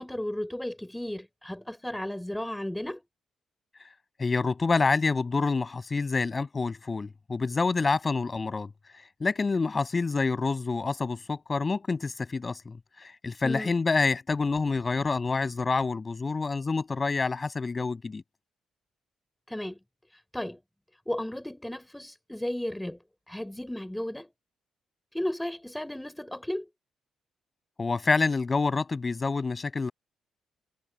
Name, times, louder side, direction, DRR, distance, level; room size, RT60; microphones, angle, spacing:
voice 1, 0.0-3.0 13.4-13.7 19.5-19.8 20.3-20.6 21.1-23.0 23.3-24.3 25.1-26.7, left 1 dB, 5° left, 5.3 m, -34 dB
voice 2, 4.2-8.7 9.2-12.8 13.2-18.2 27.8-29.9, left 4 dB, 30° left, 7.6 m, -27 dB
cardioid pair, 90°, 0 cm